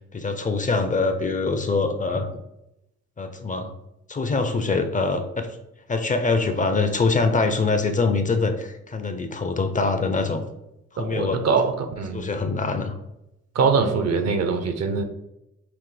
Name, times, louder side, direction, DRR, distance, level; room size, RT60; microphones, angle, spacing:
voice 1, 0.1-2.3 3.2-3.7 4.1-5.5 5.9-10.4 10.9-11.4 12.1-12.9, left 3 dB, 25° left, 7 dB, 0.5 m, -24 dB
voice 2, 11.0-12.2 13.5-15.0, right 5 dB, 55° right, 7 dB, 0.7 m, -23 dB
5.9 x 2.1 x 3.2 m, 0.87 s
cardioid pair, 90°, 30 cm